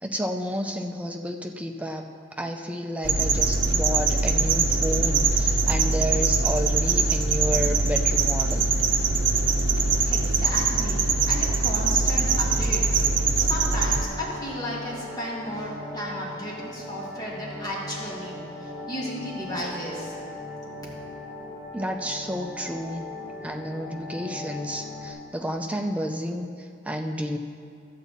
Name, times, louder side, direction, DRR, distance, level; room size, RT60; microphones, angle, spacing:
voice 1, 0.0-2.0 2.3-8.8 21.7-23.1 23.4-27.4, equal, 5° right, 4 dB, 0.5 m, -31 dB
sound 1, 3.0-14.0, right 4 dB, 70° right, 0.7 m, -22 dB
voice 2, 10.0-20.2, equal, 20° left, -6 dB, 2.1 m, -34 dB
sound 2, 13.4-25.1, left 1 dB, 35° left, 3.0 m, -39 dB
12.5 x 8.2 x 4.1 m, 2.4 s
head